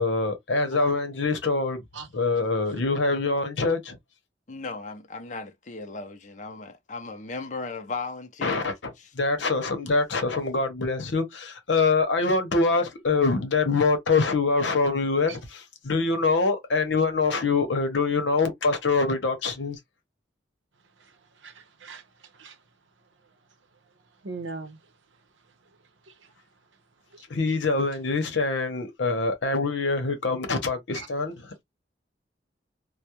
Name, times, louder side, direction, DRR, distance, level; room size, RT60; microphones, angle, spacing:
voice 1, 0.0-1.8 2.1-4.0 8.4-8.7 9.1-19.8 27.3-31.6, left 3 dB, 80° left, 0.8 m, -24 dB
voice 2, 4.5-8.7 9.0-9.1, left 3 dB, 40° left, 0.5 m, -36 dB
voice 3, 21.0-22.6 24.2-24.8 26.1-26.3 27.1-27.6 30.9-31.1, right 4 dB, 90° right, 0.7 m, -41 dB
2.3 x 2.1 x 2.8 m
head